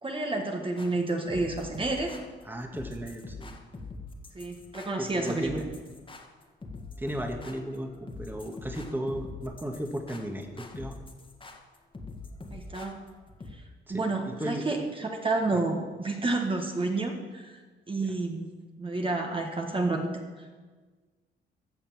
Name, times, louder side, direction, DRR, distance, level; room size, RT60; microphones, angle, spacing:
voice 1, 0.0-2.1 4.3-5.6 12.5-13.0 13.5-13.6 13.9-17.6 17.9-18.5 18.8-20.5, right 2 dB, 25° right, 2 dB, 1.6 m, -30 dB
sound 1, 0.8-13.5, left 3 dB, 25° left, 1.8 m, -44 dB
voice 2, 2.4-3.5 5.0-5.5 7.0-11.0 13.9-14.6 15.5-15.6 18.0-18.1, equal, 10° right, 3 dB, 1.7 m, -35 dB
14.0 x 7.2 x 7.1 m, 1.4 s
cardioid pair, 90°, 20 cm